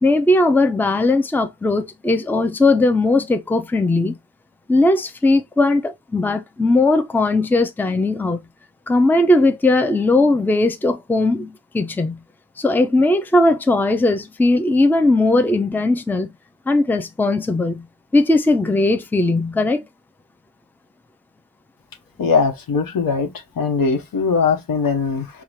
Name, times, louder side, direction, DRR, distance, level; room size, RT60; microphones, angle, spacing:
voice 1, 0.0-4.2 4.7-8.4 8.9-12.2 12.6-16.3 16.7-17.8 18.1-19.8, left 2 dB, 5° left, 0.5 m, -18 dB
voice 2, 22.2-23.3 23.6-25.4, left 5 dB, 75° left, 1.1 m, -20 dB
5.4 x 2.4 x 3.1 m
wide cardioid pair, 120°, 35 cm